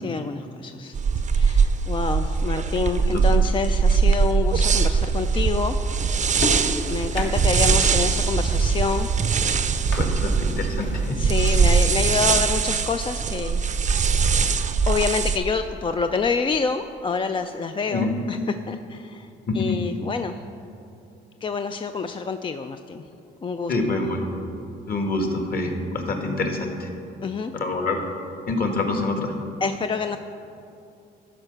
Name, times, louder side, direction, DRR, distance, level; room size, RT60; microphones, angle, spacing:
voice 1, 0.0-0.9 1.3-5.8 6.9-9.2 11.2-14.0 14.9-18.4 18.7-19.3 19.5-20.4 21.4-23.1 23.4-23.7 27.2-27.5 29.6-30.2, left 5 dB, 25° left, 7 dB, 0.3 m, -27 dB
sound 1, 0.9-15.4, right 5 dB, 40° right, 0.5 m, -21 dB
sound 2, 5.9-11.1, left 2 dB, 65° left, 1.6 m, -36 dB
voice 2, 10.0-11.2 17.9-18.1 19.5-19.8 23.7-24.3 24.9-26.9 27.5-28.0 28.5-29.3, left 2 dB, 50° left, 3 dB, 1.6 m, -26 dB
12.0 x 4.9 x 6.7 m, 2.6 s
cardioid pair, 90°, 20 cm